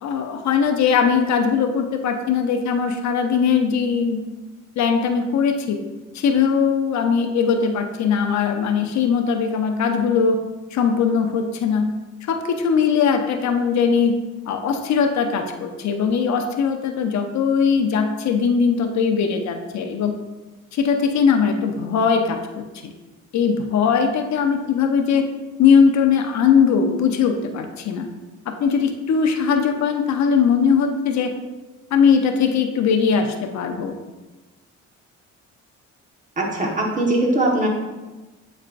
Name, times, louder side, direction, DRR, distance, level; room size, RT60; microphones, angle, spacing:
voice 1, 0.0-4.2 4.8-5.8 6.1-10.4 10.7-11.9 12.3-14.2 14.5-20.1 20.7-22.6 23.3-25.2 25.6-28.1 28.5-31.3 31.9-33.9, left 6 dB, 65° left, 5 dB, 0.7 m, -20 dB
voice 2, 36.4-37.7, right 1 dB, 25° right, -1 dB, 1.4 m, -20 dB
8.5 x 4.3 x 2.5 m, 1.2 s
cardioid pair, 90°, 30 cm